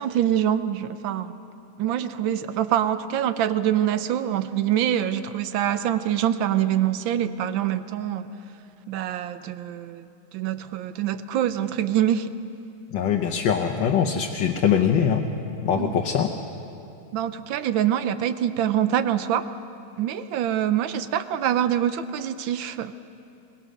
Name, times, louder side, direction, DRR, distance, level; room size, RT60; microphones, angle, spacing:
voice 1, 0.0-1.4 1.8-8.3 8.9-10.1 10.3-12.3 15.8-15.9 17.1-19.5 20.0-22.9, right 10 dB, 75° right, 12 dB, 1.4 m, -25 dB
voice 2, 12.9-15.2 15.6-16.3, left 8 dB, 70° left, 3 dB, 1.6 m, -22 dB
22.0 x 20.5 x 6.4 m, 2.7 s
omnidirectional pair, 2.2 m